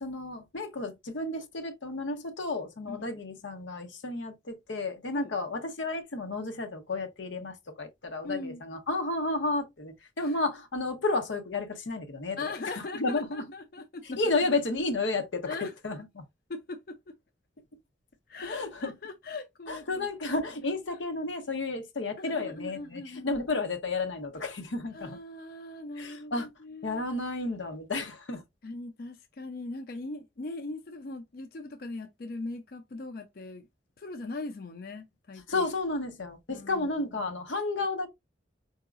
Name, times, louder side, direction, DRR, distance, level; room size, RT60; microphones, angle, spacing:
voice 1, 0.0-12.4 12.8-13.4 14.0-15.6 15.8-16.3 18.4-18.9 19.7-25.2 26.0-26.5 26.8-28.4 35.5-38.1, left 2 dB, 90° left, 0.9 m, -32 dB
voice 2, 8.2-8.6 10.2-10.4 12.4-14.5 15.5-15.7 16.5-17.1 18.3-20.1 20.9-21.0 22.2-23.4 24.9-27.0 28.6-33.7 34.0-35.6 36.5-36.9, left 3 dB, 50° left, 0.5 m, -40 dB
4.7 x 2.8 x 2.4 m
head